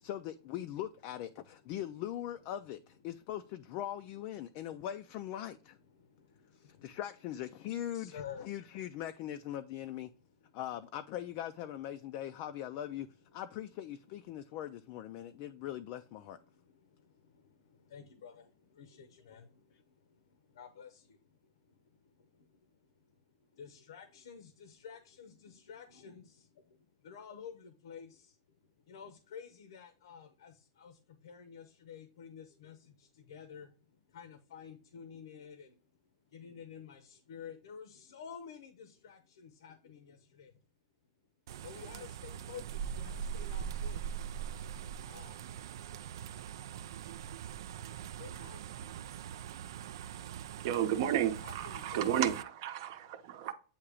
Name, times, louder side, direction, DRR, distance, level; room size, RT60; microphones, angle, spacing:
voice 1, 0.0-5.8 6.6-10.1 10.5-13.1 13.3-16.4, left 11 dB, 35° left, 0.3 m, -41 dB
voice 2, 6.0-7.0 7.9-8.5 15.2-15.6 16.5-19.9 20.3-21.4 22.2-22.5 23.5-28.4 28.9-33.7 34.1-35.8 36.3-40.6 41.6-44.1 45.0-45.4 46.9-47.0 48.2-48.8 51.4-52.2, left 7 dB, 85° left, 0.9 m, -51 dB
sound 1, 41.5-52.4, right 8 dB, 70° right, 0.3 m, -42 dB
voice 3, 50.6-53.5, right 10 dB, 45° right, 0.8 m, -32 dB
8.5 x 2.9 x 4.8 m
supercardioid pair, 170°, 2 cm